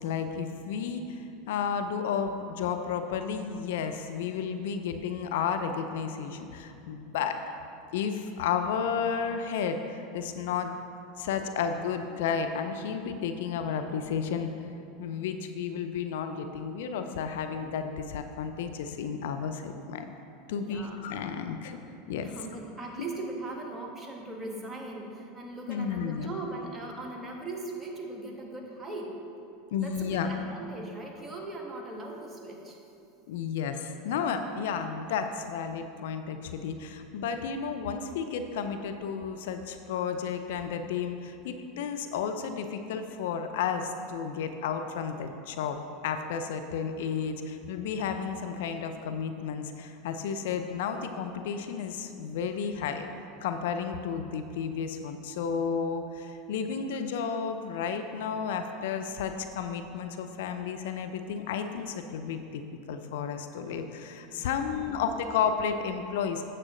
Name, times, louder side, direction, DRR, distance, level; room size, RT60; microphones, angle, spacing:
voice 1, 0.0-7.4 7.9-10.7 11.2-14.5 15.0-20.0 20.5-21.8 22.1-22.3 23.0-23.1 25.7-26.3 29.7-30.3 33.3-53.1 53.4-62.6 62.9-66.4, left 6 dB, 70° left, 7 dB, 0.5 m, -32 dB
voice 2, 20.5-21.0 22.1-29.2 29.8-32.8 64.7-65.0, right 2 dB, 15° right, -1 dB, 1.6 m, -39 dB
8.9 x 7.4 x 3.8 m, 2.6 s
hypercardioid pair, 85°, 0 cm